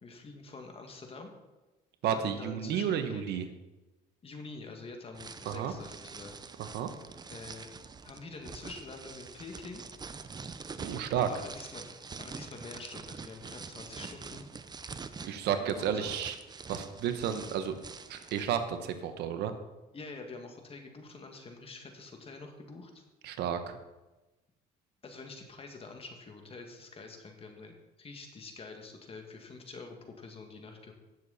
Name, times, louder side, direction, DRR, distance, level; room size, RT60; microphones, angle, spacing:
voice 1, 0.0-1.3 2.0-3.5 4.2-6.4 7.3-7.7 8.0-9.8 11.1-11.9 12.2-14.5 15.4-16.1 19.9-23.0 25.0-30.9, left 3 dB, 35° left, 4 dB, 2.1 m, -46 dB
voice 2, 2.0-3.5 5.4-5.7 6.7-6.9 10.8-11.3 15.2-16.4 16.7-17.8 18.1-19.5 23.2-23.8, right 8 dB, 80° right, 9 dB, 1.1 m, -32 dB
sound 1, 5.1-18.5, right 5 dB, 25° right, 0.7 m, -45 dB
17.5 x 6.8 x 4.2 m, 1.1 s
cardioid pair, 110°, 17 cm